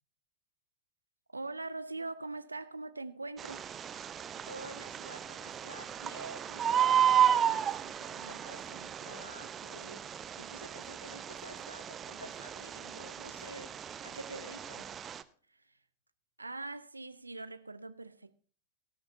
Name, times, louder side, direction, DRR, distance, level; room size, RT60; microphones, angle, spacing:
voice 1, 1.3-3.7 15.5-15.8 16.4-18.3, right 3 dB, 80° right, 0.7 m, -42 dB
Bird, 3.4-15.2, right 9 dB, 25° right, 0.7 m, -33 dB
voice 2, 4.5-14.9, right 1 dB, 85° left, 2.1 m, -49 dB
18.0 x 13.0 x 2.7 m
figure-of-eight pair, 90°, 0 cm